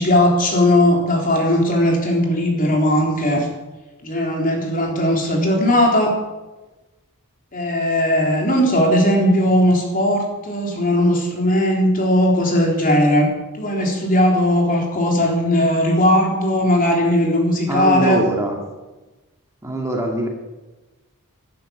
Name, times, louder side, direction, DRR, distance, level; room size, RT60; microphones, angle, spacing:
voice 1, 0.0-3.5 4.0-6.1 7.5-13.3 13.6-18.2, left 1 dB, 40° left, 0 dB, 3.8 m, -18 dB
voice 2, 17.7-18.6 19.6-20.3, right 1 dB, 15° right, 1 dB, 2.1 m, -22 dB
12.5 x 11.5 x 8.8 m, 1.1 s
head